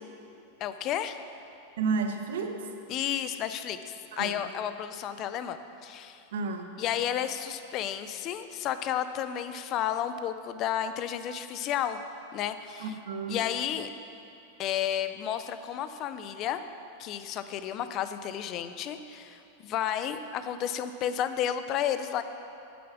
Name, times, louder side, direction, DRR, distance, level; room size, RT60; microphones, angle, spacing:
voice 1, 0.6-1.2 2.9-5.6 5.8-6.2 6.8-12.0 12.3-13.0 13.3-13.9 14.6-16.6 17.0-22.2, left 10 dB, 30° left, 11 dB, 0.4 m, -32 dB
voice 2, 1.8-2.6 4.1-4.4 6.3-6.7 12.8-13.4, right 4 dB, 85° right, 5 dB, 0.9 m, -31 dB
8.6 x 6.9 x 6.0 m, 2.8 s
supercardioid pair, 170°, 0 cm